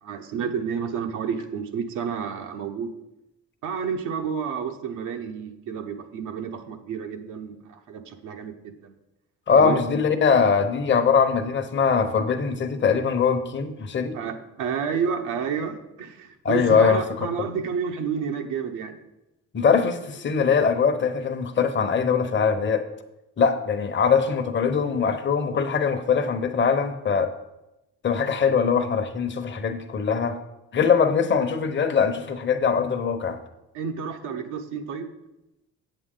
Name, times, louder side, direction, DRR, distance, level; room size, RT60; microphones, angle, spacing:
voice 1, 0.0-2.9 3.6-8.9 9.5-9.8 14.1-19.0 33.7-35.1, right 6 dB, 85° right, 4 dB, 1.0 m, -30 dB
voice 2, 9.5-14.2 16.4-17.0 17.4-17.5 19.5-22.8 23.4-27.3 28.0-30.4 30.7-33.4, left 6 dB, 40° left, 8 dB, 0.9 m, -22 dB
8.1 x 7.6 x 3.8 m, 0.93 s
cardioid pair, 90°, 30 cm